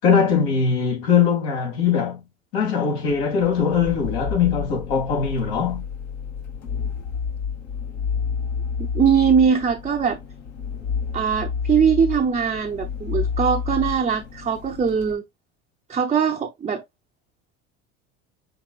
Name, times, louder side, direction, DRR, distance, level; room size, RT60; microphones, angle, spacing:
voice 1, 0.0-2.2 2.5-5.8, left 6 dB, 75° left, 3.1 m, -21 dB
sound 1, 3.0-15.1, left 6 dB, 55° left, 1.6 m, -30 dB
voice 2, 8.8-10.2 11.1-15.2 15.9-16.8, right 7 dB, 20° right, 0.7 m, -21 dB
5.9 x 3.5 x 2.4 m
supercardioid pair, 95°, 34 cm